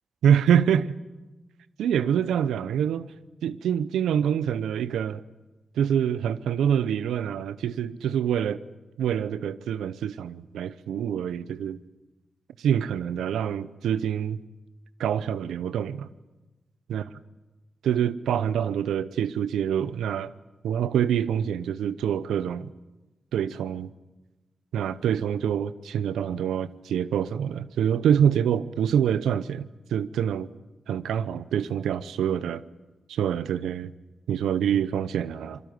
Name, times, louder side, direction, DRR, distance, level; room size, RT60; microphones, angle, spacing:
voice 1, 0.2-0.9 1.8-3.1 3.4-5.2 5.8-8.6 9.0-11.8 12.6-14.4 15.0-16.1 16.9-17.0 17.8-20.3 20.6-22.7 23.3-23.9 24.7-30.5 30.9-32.6 33.1-33.9 34.3-35.6, right 9 dB, 85° right, 16 dB, 0.8 m, -26 dB
27.0 x 20.5 x 9.5 m, 1.1 s
supercardioid pair, 45°, 0 cm